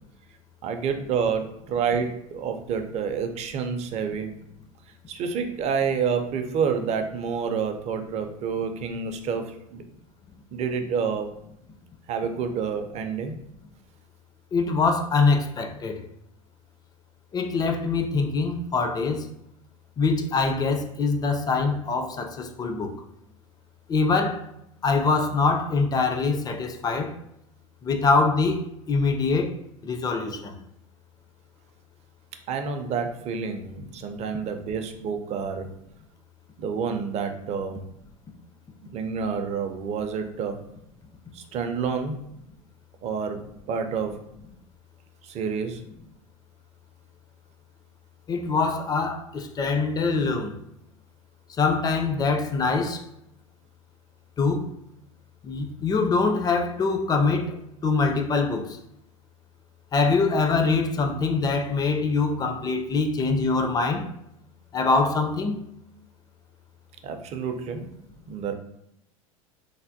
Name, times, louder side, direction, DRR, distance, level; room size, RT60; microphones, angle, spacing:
voice 1, 0.6-4.3 5.1-9.8 10.5-11.3 12.1-13.4 32.5-35.7 36.6-37.8 38.8-40.6 41.3-42.2 43.0-43.4 43.7-44.2 45.2-45.8 67.0-67.8 68.3-68.5, right 6 dB, 40° right, 0.4 m, -28 dB
voice 2, 14.5-16.0 17.3-19.2 20.0-22.9 23.9-24.4 24.8-27.1 27.8-28.6 28.9-29.5 29.8-30.5 48.3-50.5 51.6-53.0 54.4-54.7 55.4-57.6 57.8-58.8 59.9-64.0 64.7-65.6, left 4 dB, 20° left, 0.4 m, -24 dB
3.2 x 2.1 x 2.6 m
hypercardioid pair, 80°, 18 cm